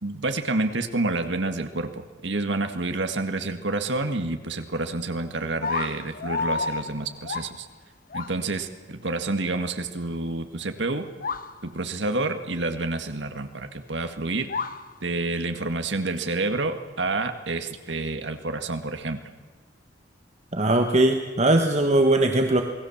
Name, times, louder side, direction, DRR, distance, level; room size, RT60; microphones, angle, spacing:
voice 1, 0.0-7.7 8.1-11.1 11.6-14.5 15.0-19.2, right 2 dB, 90° right, 7 dB, 2.0 m, -28 dB
sound 1, 5.6-7.6 8.1-8.4 10.9-11.0 11.2-11.6 14.5-14.9, left 4 dB, 50° left, 1.0 m, -30 dB
voice 2, 20.5-22.6, right 1 dB, 40° right, 4 dB, 1.4 m, -20 dB
28.0 x 20.0 x 7.3 m, 1.4 s
head